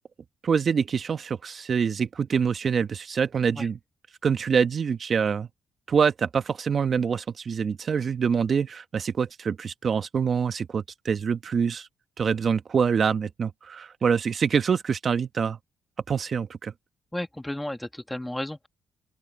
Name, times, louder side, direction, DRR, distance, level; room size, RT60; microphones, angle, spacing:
voice 1, 0.4-3.8 4.2-5.5 5.9-11.9 12.2-15.6 16.1-16.7, right 6 dB, 45° right, 1.2 m, -25 dB
voice 2, 17.1-18.7, left 1 dB, 5° left, 2.1 m, -33 dB
open air
cardioid pair, 90°, 0 cm